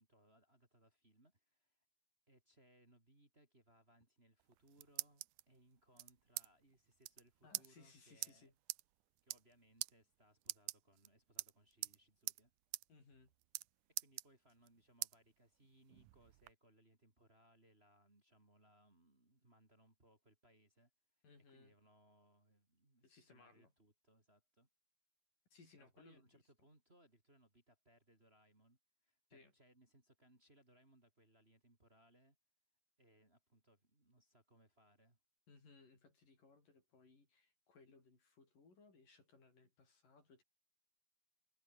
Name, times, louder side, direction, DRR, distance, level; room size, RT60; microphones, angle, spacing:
voice 1, 0.0-1.9 2.3-8.5 9.2-12.5 14.0-20.9 21.2-24.7 25.8-32.4 33.0-35.2, right 1 dB, 15° right, 3.7 m, -70 dB
sound 1, 4.4-5.4 6.0-6.5 6.7-6.8 7.0-7.2 7.5-7.7 8.2-8.3 8.7-8.8 9.2-9.5 9.8-9.9 10.4-11.1 11.4-12.0 12.3-12.4 12.7-12.8 13.1-13.7 14.0-14.7 15.0-15.1 15.6-16.5, right 19 dB, 80° right, 2.0 m, -44 dB
voice 2, 7.4-8.5 12.9-13.3 21.2-21.7 23.0-23.7 25.5-26.4 29.3-29.5 35.5-40.4, left 4 dB, 70° left, 8.6 m, -65 dB
omnidirectional pair, 4.0 m